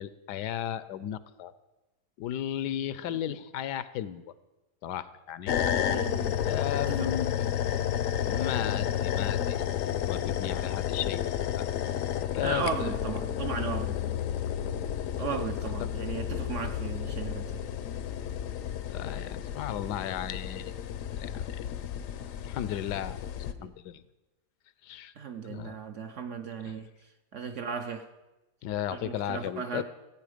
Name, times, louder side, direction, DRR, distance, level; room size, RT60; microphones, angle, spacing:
voice 1, 0.0-1.5 2.2-4.2 4.8-5.6 6.5-7.5 8.2-9.8 10.1-11.2 11.6-11.7 12.3-12.9 18.9-20.7 21.2-21.6 22.4-23.2 23.6-24.0 24.8-25.1 25.5-25.8 26.6-26.7 28.6-29.8, left 11 dB, 80° left, 16 dB, 1.2 m, -35 dB
sound 1, 5.5-23.5, left 10 dB, 65° left, 0.8 m, -31 dB
voice 2, 5.6-6.4 6.9-7.1 12.4-14.2 15.2-17.6 23.6-23.7 25.2-26.9 27.3-28.1 28.9-29.8, right 6 dB, 65° right, 7 dB, 0.8 m, -36 dB
15.0 x 8.6 x 5.0 m, 1.1 s
omnidirectional pair, 1.8 m